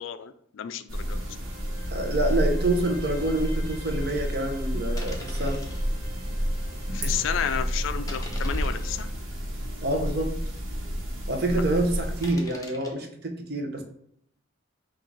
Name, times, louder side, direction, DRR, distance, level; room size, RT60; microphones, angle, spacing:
voice 1, 0.0-1.4 6.9-9.1 11.5-11.6, left 8 dB, 65° left, 10 dB, 0.3 m, -32 dB
Bowed string instrument, 0.9-9.2, right 2 dB, 20° right, 0.9 m, -50 dB
sound 1, 0.9-12.3, equal, 75° right, 1.1 m, -30 dB
voice 2, 1.9-5.6 9.8-10.4 11.3-13.8, right 1 dB, 50° right, 4 dB, 0.6 m, -27 dB
sound 2, 2.3-2.5 3.0-3.1 4.1-4.4 5.0-5.8 6.5-6.6 7.1-7.3 8.0-9.0 9.7-9.8 10.2-10.3 10.5-10.6 12.2-12.9, left 2 dB, 15° left, 0.6 m, -44 dB
4.5 x 2.4 x 3.8 m, 0.69 s
head